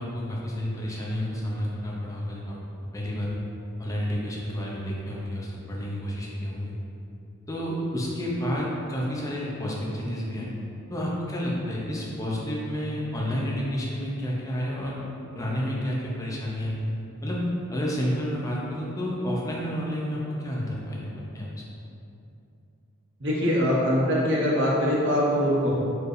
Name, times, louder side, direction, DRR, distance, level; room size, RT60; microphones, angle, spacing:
voice 1, 0.0-2.6 2.9-3.4 3.8-6.7 7.5-10.5 10.9-15.0 15.3-16.9 17.2-21.1 21.3-21.5, equal, 15° left, -4 dB, 0.5 m, -30 dB
voice 2, 23.2-25.7, equal, 60° right, -5 dB, 0.9 m, -23 dB
4.5 x 3.3 x 2.6 m, 2.7 s
head